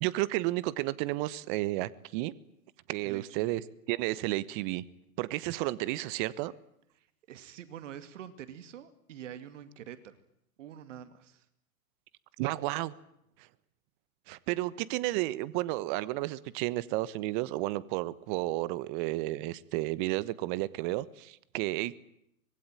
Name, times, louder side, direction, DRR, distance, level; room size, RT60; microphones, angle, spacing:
voice 1, 0.0-2.3 2.9-3.6 3.9-4.8 5.2-6.5 12.4-12.9 14.3-22.0, right 18 dB, 35° right, 18 dB, 1.2 m, -32 dB
voice 2, 3.0-3.5 6.9-10.2 10.6-11.5, right 10 dB, 55° right, 12 dB, 2.6 m, -46 dB
25.0 x 21.5 x 9.2 m, 0.74 s
hypercardioid pair, 125°, 44 cm